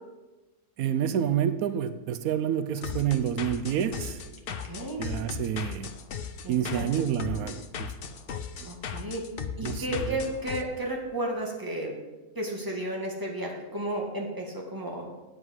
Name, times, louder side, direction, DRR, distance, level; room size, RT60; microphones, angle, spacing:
voice 1, 0.8-4.2 5.0-5.9 6.5-7.9 9.6-10.2, right 9 dB, 90° right, 11 dB, 1.1 m, -28 dB
sound 1, 2.8-10.6, left 6 dB, 50° left, 0.7 m, -37 dB
voice 2, 4.7-5.0 6.4-7.5 8.6-9.2 9.6-11.9 12.4-15.1, right 1 dB, 15° right, -1 dB, 1.9 m, -33 dB
9.3 x 8.0 x 6.3 m, 1.2 s
omnidirectional pair, 1.5 m